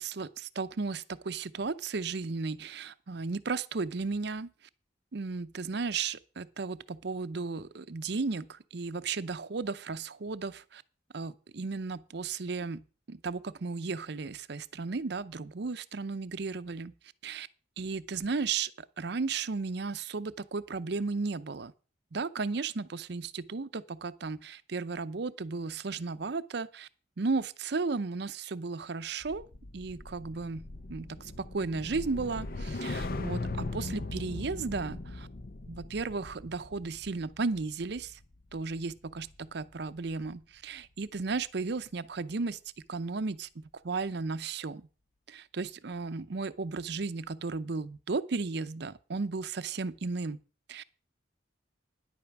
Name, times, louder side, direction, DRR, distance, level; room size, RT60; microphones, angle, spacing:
voice 1, 0.0-4.5 5.1-10.8 11.1-16.9 17.2-17.5 17.8-18.7 19.0-21.7 22.1-26.9 27.2-29.5 29.7-35.3 35.7-38.2 38.5-42.6 42.9-44.9 45.3-50.4 50.7-50.8, right 4 dB, 65° right, 0.6 m, -34 dB
sound 1, 29.2-39.6 40.0-40.3, left 2 dB, 50° left, 0.8 m, -40 dB
10.5 x 8.6 x 5.9 m
head